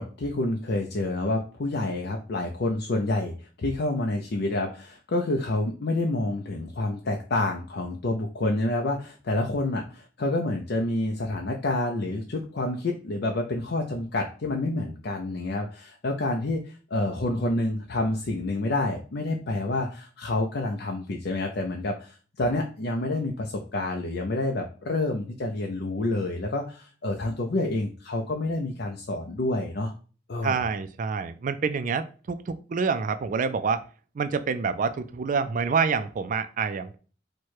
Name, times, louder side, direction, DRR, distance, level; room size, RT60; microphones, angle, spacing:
voice 1, 0.0-29.9 30.3-30.6, left 2 dB, 60° left, 2 dB, 0.6 m, -28 dB
voice 2, 30.4-33.8 34.2-37.0, right 5 dB, 45° right, 10 dB, 0.4 m, -27 dB
4.3 x 2.2 x 4.6 m, 0.37 s
head